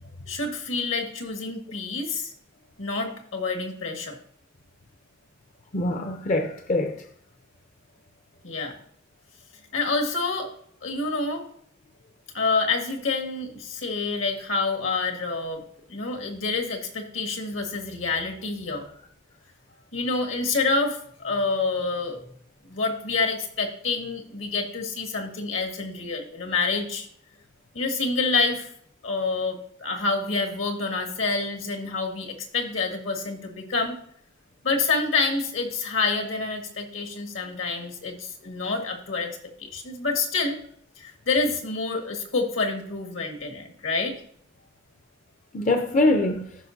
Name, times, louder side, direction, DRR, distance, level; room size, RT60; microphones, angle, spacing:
voice 1, 0.3-2.3 2.8-4.2 8.4-8.7 9.7-10.5 10.8-11.4 12.3-15.6 15.9-18.9 19.9-22.2 22.6-27.1 27.7-28.7 29.0-33.9 34.6-39.3 39.6-40.6 41.0-44.2, left 3 dB, 75° left, 1.8 m, -27 dB
voice 2, 5.7-7.0 45.5-46.5, left 2 dB, 40° left, 0.5 m, -23 dB
15.0 x 5.7 x 2.6 m
head